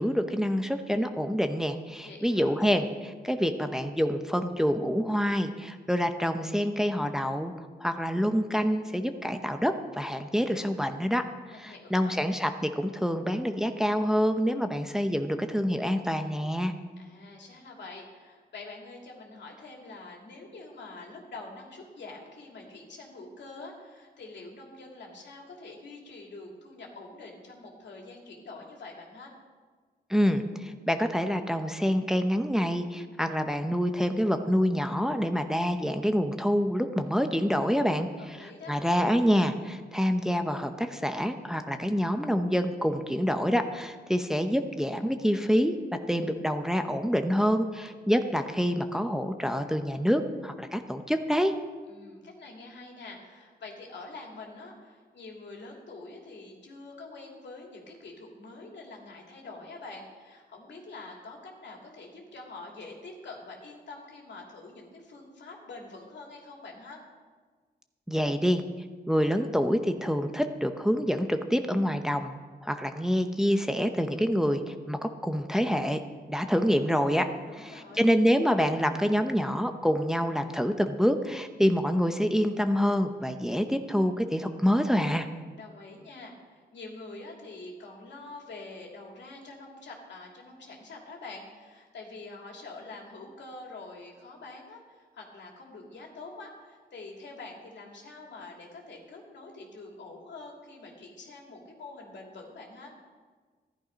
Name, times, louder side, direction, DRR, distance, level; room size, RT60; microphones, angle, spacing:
voice 1, 0.0-11.2 11.6-16.7 30.1-45.7 46.1-51.5 68.1-68.6 69.1-72.3 72.6-76.0 76.3-85.3, equal, 5° right, 6 dB, 0.8 m, -27 dB
voice 2, 2.0-2.5 11.4-12.2 17.0-29.3 38.2-38.7 51.9-67.0 77.4-78.1 85.6-102.9, left 3 dB, 80° left, 0 dB, 2.8 m, -45 dB
14.0 x 11.5 x 5.2 m, 1.5 s
cardioid pair, 85°, 18 cm